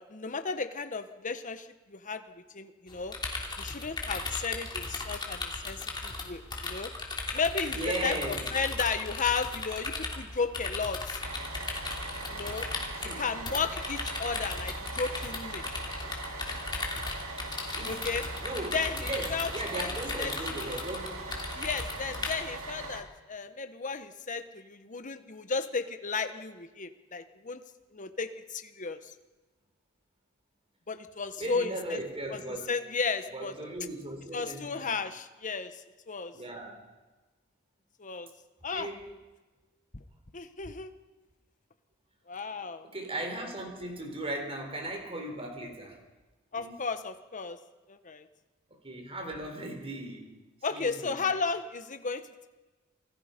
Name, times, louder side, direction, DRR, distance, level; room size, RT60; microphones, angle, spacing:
voice 1, 0.0-2.2 2.5-3.1 3.6-6.9 7.3-11.2 12.3-12.7 13.2-15.6 17.9-18.2 18.7-19.9 20.2-20.8 21.5-27.6 27.9-29.1 30.9-32.0 32.3-33.5 34.3-36.3 38.0-38.3 38.6-38.9 39.9-40.0 40.3-40.9 42.3-42.9 46.5-47.6 47.9-48.3 50.6-52.5, left 4 dB, 40° left, 9 dB, 1.2 m, -34 dB
sound 1, 2.9-22.3, left 3 dB, 20° left, 3.1 m, -37 dB
voice 2, 7.7-8.5 13.0-13.3 17.8-18.0 18.4-21.3 31.4-32.7 33.3-35.0 36.3-36.9 38.7-39.1 42.8-46.0 46.5-46.8 48.7-50.4 50.7-51.2, right 1 dB, 30° right, 4 dB, 3.9 m, -37 dB
Bus, 11.2-23.0, right 3 dB, 85° right, 2.7 m, -41 dB
28.0 x 18.5 x 5.3 m, 1.2 s
head